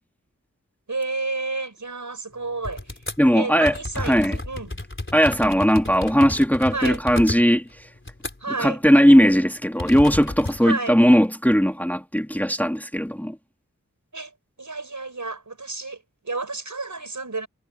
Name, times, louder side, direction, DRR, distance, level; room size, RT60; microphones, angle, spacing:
voice 1, 0.9-3.0 3.3-4.8 6.7-7.0 8.4-8.8 10.6-11.0 14.1-14.3 14.6-17.5, right 3 dB, 80° right, 6.0 m, -31 dB
sound 1, 2.6-3.2 3.7-8.6 8.9-9.1 9.8-10.6, left 2 dB, 40° left, 4.4 m, -33 dB
voice 2, 3.2-3.7 4.0-4.4 5.1-7.6 8.6-13.4, equal, 5° left, 2.2 m, -18 dB
wide cardioid pair, 50°, 30 cm